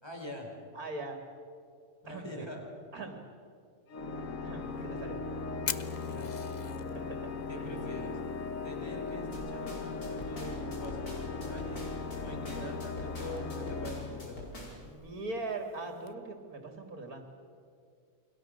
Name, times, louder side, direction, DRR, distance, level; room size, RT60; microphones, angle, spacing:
voice 1, 0.0-0.5 2.0-2.6 6.1-6.3 7.5-8.2 8.6-14.7, left 1 dB, 15° left, 1 dB, 4.4 m, -44 dB
voice 2, 0.7-1.2 2.1-2.5 2.9-3.2 4.4-5.2 6.9-7.3 7.6-7.7 12.5-12.7 14.8-17.2, right 3 dB, 75° right, 4 dB, 2.8 m, -41 dB
Organ, 3.9-14.8, left 4 dB, 65° left, 1.5 m, -38 dB
Fire, 4.6-16.1, left 6 dB, 40° left, 0.7 m, -48 dB
sound 1, 9.3-14.9, left 1 dB, 80° left, 5.6 m, -46 dB
29.0 x 22.5 x 6.6 m, 2.3 s
omnidirectional pair, 1.6 m